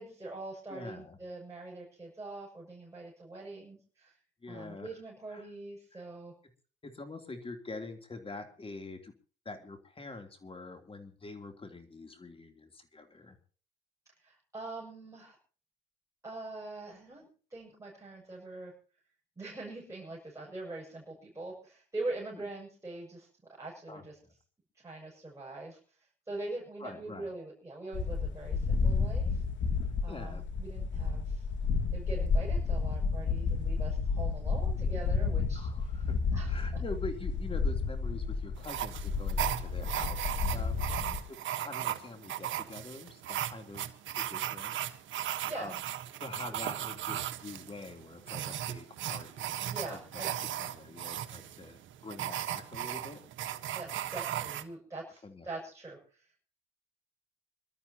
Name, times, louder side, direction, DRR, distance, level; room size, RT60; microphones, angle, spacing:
voice 1, 0.0-4.2 4.5-6.4 14.2-15.4 16.2-18.7 19.4-24.2 24.8-29.4 30.0-31.5 31.9-36.8 40.4-40.6 40.9-41.2 45.2-45.7 49.6-50.3 53.7-56.3, right 2 dB, 15° right, -4 dB, 7.1 m, -43 dB
voice 2, 0.7-1.2 4.4-4.9 5.3-5.5 5.9-6.0 6.8-9.1 9.4-13.4 22.3-22.5 23.9-24.3 26.8-27.3 29.8-30.5 35.5-36.2 36.4-41.0 41.3-44.8 45.5-45.8 46.2-49.5 49.9-53.2 55.2-55.5, left 3 dB, 30° left, 6 dB, 3.2 m, -45 dB
sound 1, 27.9-41.2, left 4 dB, 70° left, 2.7 m, -31 dB
sound 2, 38.6-54.6, right 12 dB, 75° right, 1.3 m, -37 dB
27.0 x 13.0 x 2.9 m, 0.41 s
cardioid pair, 90°, 20 cm